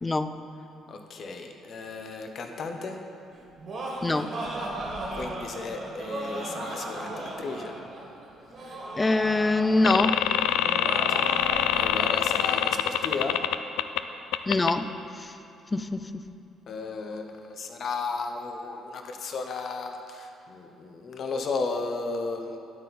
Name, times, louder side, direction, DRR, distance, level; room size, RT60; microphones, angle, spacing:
voice 1, 0.0-0.3 4.0-4.3 9.0-10.2 14.5-15.3 15.7-16.2, left 2 dB, 15° left, 11 dB, 0.3 m, -24 dB
voice 2, 0.9-3.0 5.1-7.7 11.1-11.3 11.7-13.4 16.7-22.6, left 4 dB, 45° left, 5 dB, 0.8 m, -34 dB
Laughter, 3.4-12.5, right 2 dB, 40° right, 1.6 m, -36 dB
sound 1, 9.8-14.0 14.3-14.7, left 10 dB, 90° left, 0.3 m, -25 dB
10.0 x 8.5 x 4.2 m, 2.7 s
cardioid pair, 135°, 0 cm